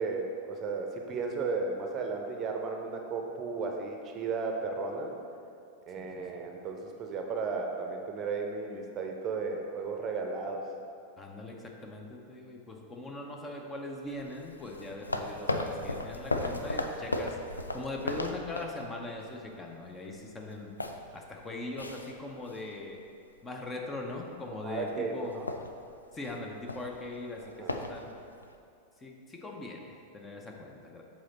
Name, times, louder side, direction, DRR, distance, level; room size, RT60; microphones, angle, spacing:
voice 1, 0.0-5.1 5.9-10.7 24.6-25.5 27.6-27.8, right 4 dB, 30° right, 2 dB, 0.7 m, -34 dB
voice 2, 11.2-17.4 17.7-20.7 21.1-23.0 23.4-25.4 26.1-28.1 29.0-31.0, left 2 dB, 20° left, 1 dB, 0.7 m, -40 dB
sound 1, 14.0-19.3 19.7-19.9 20.2-22.9 23.3-23.6 24.1-24.5 24.8-24.9 25.2-28.5, left 2 dB, 80° left, 0.4 m, -37 dB
7.6 x 4.1 x 4.2 m, 2.4 s
figure-of-eight pair, 90°, 0 cm